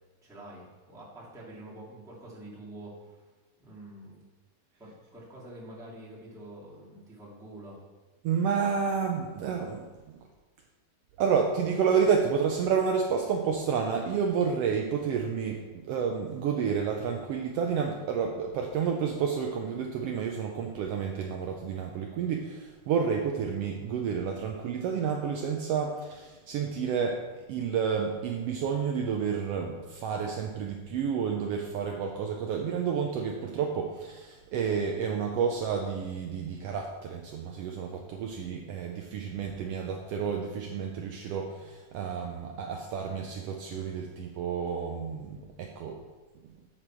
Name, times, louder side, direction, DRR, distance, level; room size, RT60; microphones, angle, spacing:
voice 1, 0.2-3.2 3.6-4.2 4.8-7.8, right 1 dB, ahead, -7 dB, 1.4 m, -46 dB
voice 2, 8.2-9.9 10.1-10.2 11.2-46.0, right 6 dB, 90° right, 2 dB, 1.3 m, -30 dB
8.1 x 5.9 x 4.5 m, 1.2 s
omnidirectional pair, 3.5 m